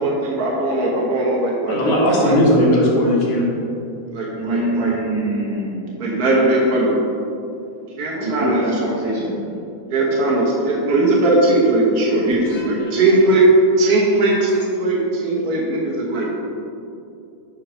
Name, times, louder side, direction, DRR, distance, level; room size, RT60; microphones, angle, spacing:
voice 1, 0.0-2.3 4.1-4.9 6.0-6.9 8.0-8.7 9.9-13.5 13.8-16.4, right 2 dB, 75° right, -4 dB, 0.8 m, -19 dB
voice 2, 1.6-3.5 12.5-12.9, left 1 dB, 70° left, -4 dB, 2.8 m, -18 dB
voice 3, 4.4-6.2 8.1-9.4, right 1 dB, 50° right, -6 dB, 1.3 m, -24 dB
7.6 x 6.2 x 4.9 m, 2.6 s
omnidirectional pair, 3.6 m